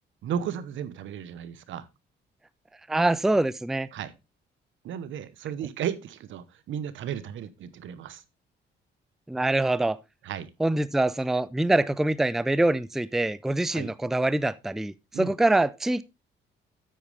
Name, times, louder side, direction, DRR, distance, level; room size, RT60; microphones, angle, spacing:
voice 1, 0.2-1.9 3.9-4.1 4.8-8.2 10.2-10.5 13.7-13.9 15.1-15.3, right 9 dB, 75° right, 1.0 m, -34 dB
voice 2, 2.9-3.9 9.3-10.0 10.6-16.0, right 2 dB, ahead, 0.4 m, -24 dB
9.0 x 8.5 x 3.3 m
cardioid pair, 90°, 20 cm